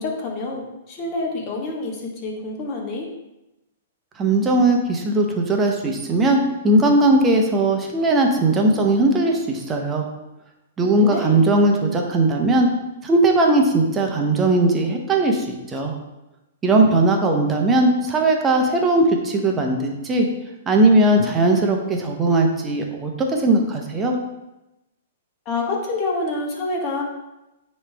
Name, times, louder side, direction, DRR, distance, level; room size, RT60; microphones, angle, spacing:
voice 1, 0.0-3.1 10.8-11.3 25.4-27.0, left 3 dB, 35° left, -1 dB, 1.5 m, -27 dB
voice 2, 4.2-10.1 10.8-12.7 13.0-15.9 16.6-20.3 20.7-24.1, right 2 dB, 20° right, 2 dB, 0.9 m, -18 dB
9.5 x 3.2 x 3.4 m, 0.95 s
hypercardioid pair, 130°, 0 cm